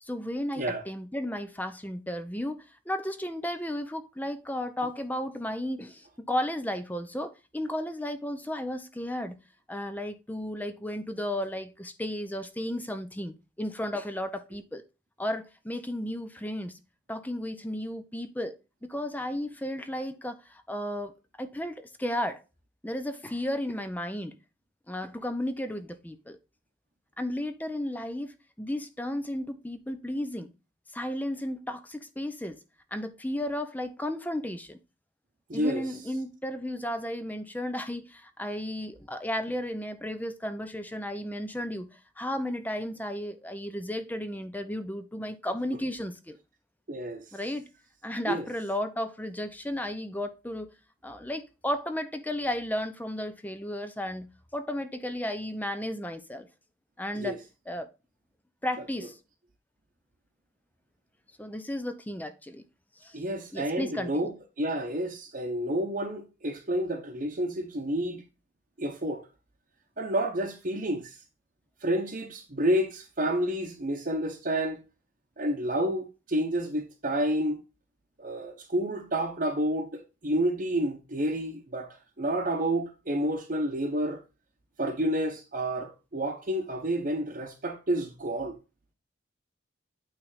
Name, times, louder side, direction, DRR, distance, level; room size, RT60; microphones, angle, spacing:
voice 1, 0.0-9.4 9.7-14.8 15.2-16.8 17.1-18.6 18.8-21.1 21.4-22.4 22.8-24.4 24.9-26.4 27.2-30.5 30.9-32.6 32.9-34.8 35.5-46.4 47.3-47.7 48.0-50.7 51.0-56.5 57.0-57.4 57.7-57.9 58.6-59.2 61.4-62.7 63.0-63.2 63.5-64.3, left 1 dB, 10° left, 0.6 m, -34 dB
voice 2, 35.5-35.9 46.9-47.2 48.3-48.5 57.1-57.4 63.1-68.2 68.8-69.3 70.0-71.2 71.8-74.8 75.4-77.6 78.2-84.2 84.8-88.6, right 1 dB, 45° right, 1.0 m, -29 dB
8.8 x 3.5 x 4.1 m
head